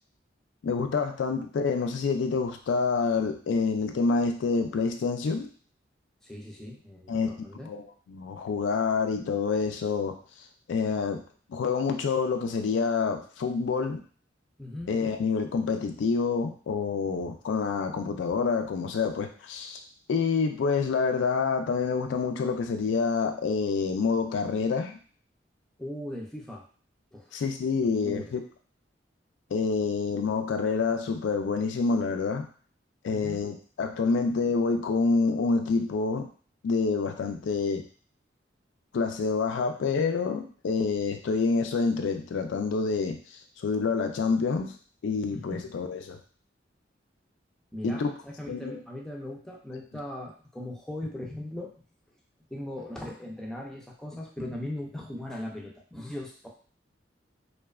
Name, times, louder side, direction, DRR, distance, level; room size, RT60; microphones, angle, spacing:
voice 1, 0.6-5.5 7.1-7.8 8.1-10.2 10.7-11.2 11.5-14.0 14.9-19.8 20.1-25.0 27.3-28.4 29.5-32.5 33.0-36.3 36.6-37.8 38.9-44.7 45.0-46.2 47.8-48.1 48.5-48.8, left 4 dB, 80° left, 5 dB, 0.3 m, -27 dB
voice 2, 6.2-7.7 14.6-15.0 25.8-26.6 27.1-27.4 27.8-28.3 33.1-33.4 45.3-45.7 47.7-51.7 52.5-56.5, left 1 dB, 5° left, -2 dB, 0.4 m, -39 dB
2.7 x 2.1 x 2.3 m, 0.42 s
head